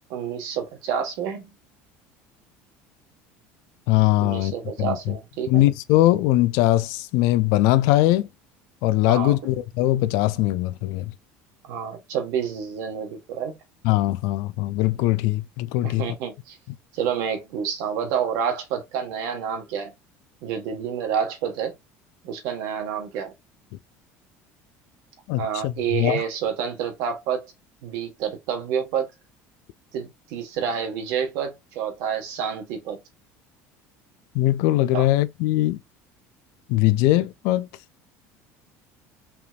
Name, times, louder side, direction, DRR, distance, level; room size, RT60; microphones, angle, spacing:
voice 1, 0.1-1.5 4.2-5.7 9.1-9.4 11.7-13.5 15.8-16.6 16.9-19.9 20.4-21.8 22.2-23.3 25.4-27.5 27.8-29.1 29.9-33.0 34.9-35.1, right 7 dB, 70° right, 1.2 m, -28 dB
voice 2, 3.9-5.1 5.5-8.3 8.8-11.1 13.8-16.0 25.3-26.2 34.3-35.8 36.7-37.7, left 16 dB, 75° left, 0.4 m, -21 dB
3.4 x 2.8 x 2.3 m
cardioid pair, 135°, 6 cm